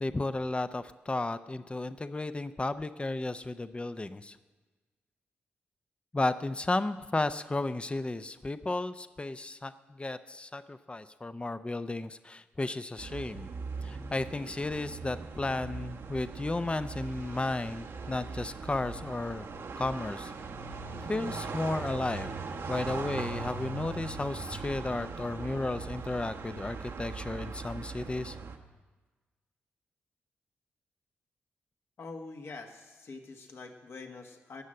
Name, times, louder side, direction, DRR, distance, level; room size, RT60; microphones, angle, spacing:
voice 1, 0.0-4.4 6.1-13.5 13.8-19.5 19.8-20.3 21.0-22.3 22.7-28.4, left 2 dB, 25° left, 12 dB, 0.6 m, -33 dB
sound 1, 13.0-28.6, right 4 dB, 70° right, 1.2 m, -40 dB
voice 2, 32.0-34.6, left 3 dB, 60° left, 4 dB, 1.6 m, -45 dB
18.0 x 6.5 x 7.7 m, 1.3 s
supercardioid pair, 45°, 5 cm